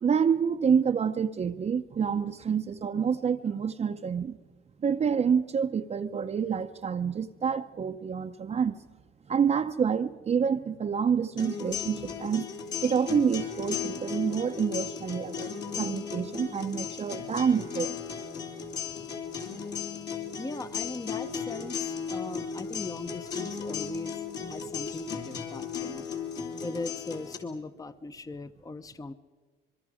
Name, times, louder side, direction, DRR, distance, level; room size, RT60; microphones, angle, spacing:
voice 1, 0.0-4.4 4.8-8.8 9.3-12.5 12.8-18.0, right 7 dB, 35° right, 0.6 m, -27 dB
sound 1, 11.4-27.4, left 7 dB, 65° left, 3.0 m, -36 dB
voice 2, 20.4-26.1 26.6-29.1, left 3 dB, 20° left, 0.7 m, -39 dB
25.0 x 22.5 x 5.0 m
cardioid pair, 100°, 19 cm